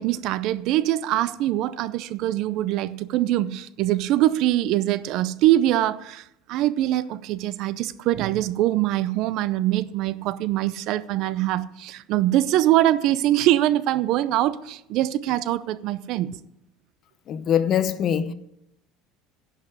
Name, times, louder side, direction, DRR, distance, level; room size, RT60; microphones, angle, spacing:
voice 1, 0.0-6.2 6.5-16.4, right 14 dB, 55° right, 0.6 m, -23 dB
voice 2, 17.3-18.3, left 9 dB, 40° left, 0.8 m, -23 dB
11.0 x 5.7 x 8.3 m
cardioid pair, 140°, 0 cm